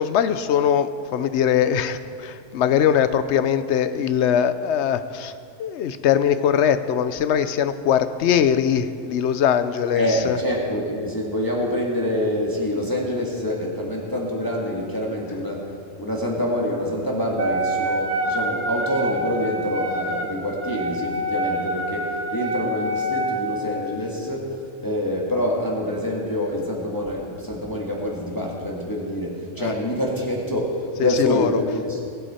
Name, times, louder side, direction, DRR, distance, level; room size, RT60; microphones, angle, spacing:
voice 1, 0.0-5.3 5.6-10.4 24.5-24.6 29.6-29.7 31.0-31.6, left 8 dB, 65° left, 12 dB, 0.9 m, -21 dB
voice 2, 9.9-15.6 16.0-24.5 24.8-32.0, left 1 dB, 15° left, -3 dB, 1.7 m, -26 dB
Wind instrument woodwind instrument, 17.4-23.8, right 1 dB, 65° right, 1.5 m, -27 dB
22.0 x 8.2 x 4.3 m, 2.4 s
omnidirectional pair, 1.3 m